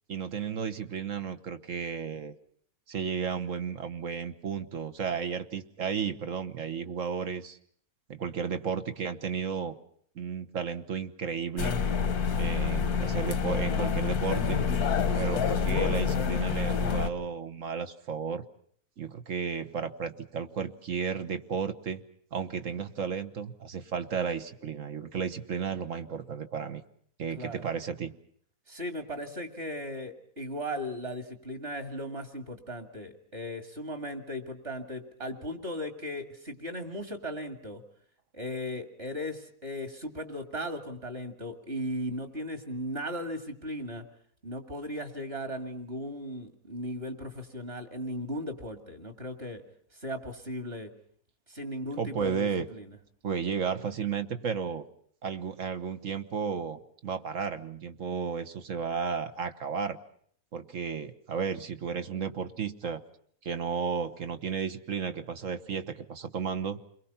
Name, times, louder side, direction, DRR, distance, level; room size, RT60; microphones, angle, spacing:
voice 1, 0.1-2.3 2.9-7.6 8.1-9.8 10.1-11.7 12.4-14.6 15.2-18.4 19.0-22.0 22.3-26.8 27.2-28.1 52.0-52.7 53.2-54.8 55.2-60.0 60.5-63.0 63.4-66.8, right 6 dB, 60° right, 8 dB, 1.6 m, -33 dB
sound 1, 11.6-17.1, left 6 dB, 85° left, 1.8 m, -27 dB
voice 2, 27.3-27.7 28.7-37.8 38.3-44.0 44.4-49.6 49.9-50.9 51.5-53.0, equal, 40° right, 7 dB, 2.7 m, -37 dB
29.5 x 22.5 x 5.7 m, 0.62 s
omnidirectional pair, 1.6 m